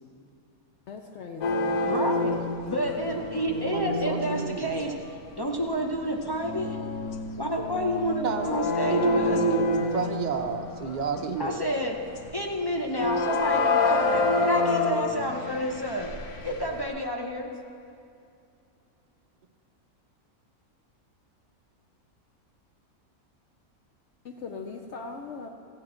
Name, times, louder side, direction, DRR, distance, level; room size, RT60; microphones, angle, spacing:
voice 1, 0.9-1.9 24.2-25.5, left 4 dB, 60° left, 4 dB, 0.8 m, -40 dB
sound 1, 1.4-4.8 5.4-5.6 6.2-11.6 12.2-12.5 12.9-16.8, left 3 dB, 85° left, 1.4 m, -28 dB
voice 2, 1.8-4.9 5.4-6.8 7.4-9.4 11.4-12.0 12.3-16.1 16.4-17.5, equal, 35° left, 0 dB, 0.3 m, -30 dB
voice 3, 3.7-5.0 8.1-8.6 8.9-11.6, right 5 dB, 45° right, 4 dB, 0.6 m, -30 dB
15.0 x 8.7 x 4.3 m, 2.5 s
omnidirectional pair, 1.5 m